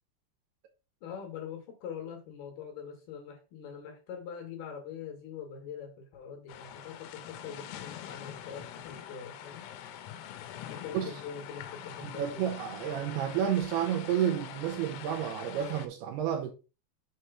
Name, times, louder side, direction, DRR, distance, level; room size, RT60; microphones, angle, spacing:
voice 1, 1.0-9.7 10.6-12.4, left 7 dB, 65° left, 3.0 m, -43 dB
sound 1, 6.5-15.9, left 10 dB, 85° left, 3.1 m, -44 dB
voice 2, 12.0-16.5, right 9 dB, 75° right, 2.6 m, -30 dB
6.7 x 3.1 x 5.6 m
omnidirectional pair, 5.2 m